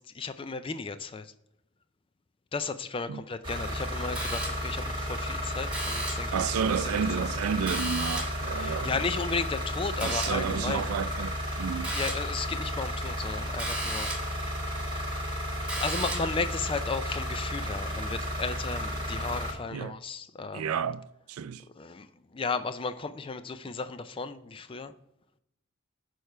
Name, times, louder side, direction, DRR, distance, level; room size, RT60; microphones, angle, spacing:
voice 1, 0.1-1.3 2.5-6.4 6.8-7.0 8.6-10.9 11.9-14.1 15.8-20.7 21.8-24.9, left 4 dB, 25° left, 0.3 m, -34 dB
sound 1, 3.4-19.5, equal, 25° right, 1.7 m, -33 dB
sound 2, 4.1-4.8 5.7-6.4 7.7-8.5 10.0-10.5 11.8-12.4 13.6-14.4 15.7-16.4, right 1 dB, 5° right, 1.6 m, -35 dB
voice 2, 6.3-9.0 10.0-12.0 19.7-20.0 20.5-21.6, right 7 dB, 90° right, 0.3 m, -31 dB
6.6 x 4.6 x 5.5 m
head